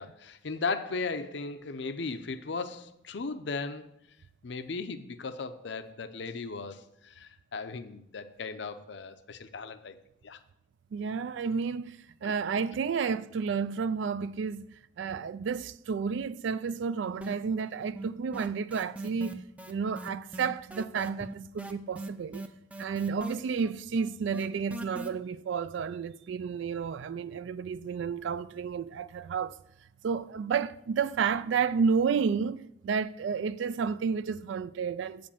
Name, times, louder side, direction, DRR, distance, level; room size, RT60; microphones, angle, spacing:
voice 1, 0.0-3.9 4.4-10.0 10.2-10.4 12.2-12.3, left 4 dB, 65° left, 0.6 m, -37 dB
voice 2, 10.9-22.5 22.8-29.5 30.0-35.3, right 6 dB, 70° right, 0.3 m, -31 dB
sound 1, 17.2-17.7 18.0-25.1, right 2 dB, 5° right, 0.4 m, -40 dB
8.0 x 5.2 x 6.9 m
head